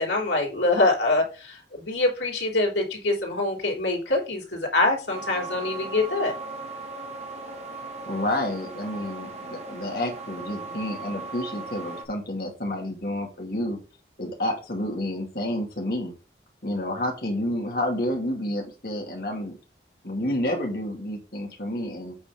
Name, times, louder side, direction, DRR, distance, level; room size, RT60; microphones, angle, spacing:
voice 1, 0.0-6.3, left 2 dB, 90° left, -1 dB, 3.4 m, -24 dB
sound 1, 5.1-12.1, right 3 dB, 40° right, 1.4 m, -37 dB
voice 2, 8.1-13.8 14.2-16.1 16.6-19.6 20.0-22.2, left 1 dB, 55° left, 1 dB, 2.4 m, -29 dB
8.7 x 4.3 x 5.1 m, 0.33 s
head